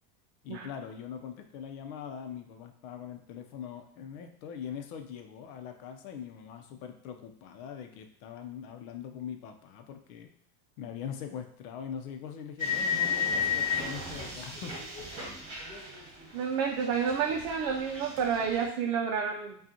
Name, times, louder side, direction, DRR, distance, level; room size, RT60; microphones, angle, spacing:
voice 1, 0.4-10.3 10.8-14.8, left 8 dB, 70° left, 6 dB, 0.7 m, -42 dB
sound 1, 12.6-16.5 16.8-18.6, left 6 dB, 35° right, 1.2 m, -33 dB
voice 2, 16.3-19.6, right 6 dB, 55° right, 1 dB, 0.6 m, -30 dB
5.0 x 2.4 x 2.8 m, 0.63 s
supercardioid pair, 120°, 45 cm